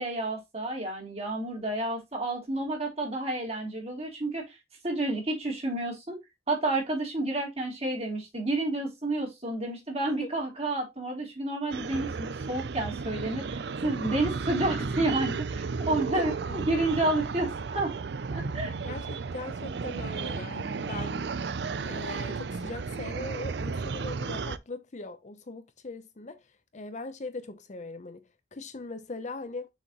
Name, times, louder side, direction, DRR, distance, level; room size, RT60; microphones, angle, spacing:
voice 1, 0.0-4.6 4.8-6.2 6.5-17.9 18.3-18.7, right 2 dB, 35° right, 3.2 m, -30 dB
sound 1, 11.7-24.6, right 4 dB, 70° right, 0.5 m, -34 dB
voice 2, 16.1-16.7 18.8-21.3 21.8-26.4 26.7-28.2 28.5-29.7, left 3 dB, 45° left, 0.7 m, -40 dB
6.6 x 4.9 x 3.0 m
head